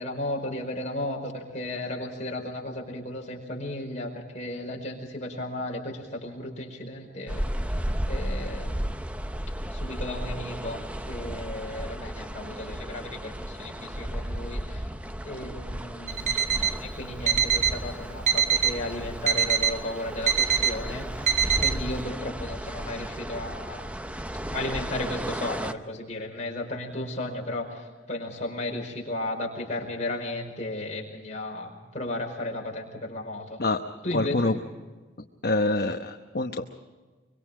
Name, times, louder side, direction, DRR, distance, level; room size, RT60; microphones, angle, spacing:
voice 1, 0.0-7.4 8.1-8.8 9.7-14.9 15.2-23.9 24.5-33.6 34.0-34.5, left 1 dB, 35° left, 0 dB, 5.1 m, -34 dB
sound 1, 7.3-25.7, equal, 5° right, 0.7 m, -34 dB
Alarm, 16.1-16.8 17.3-17.8 18.3-18.8 19.3-19.8 20.3-20.8 21.3-21.8, right 8 dB, 40° right, 1.0 m, -23 dB
voice 2, 34.1-34.6 35.4-36.6, left 2 dB, 50° left, 4 dB, 1.0 m, -25 dB
24.5 x 24.0 x 5.0 m, 1.3 s
head